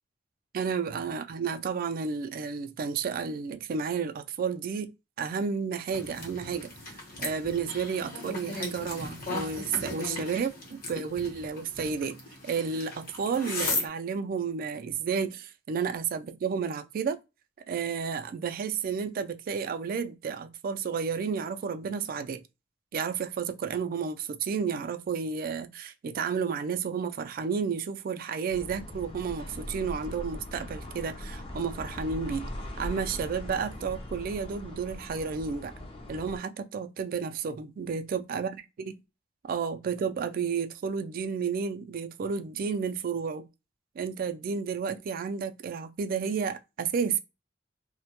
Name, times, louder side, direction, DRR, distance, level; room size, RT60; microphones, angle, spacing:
voice 1, 0.5-4.9 5.2-6.7 7.2-12.2 12.4-17.2 17.7-22.4 22.9-32.5 32.8-35.7 36.1-39.0 39.4-43.5 44.0-47.2, right 6 dB, 50° right, 0.3 m, -31 dB
sound 1, 5.9-13.9, left 3 dB, 50° left, 0.9 m, -37 dB
sound 2, 28.5-36.4, left 1 dB, 30° left, 0.5 m, -40 dB
2.1 x 2.1 x 2.8 m
head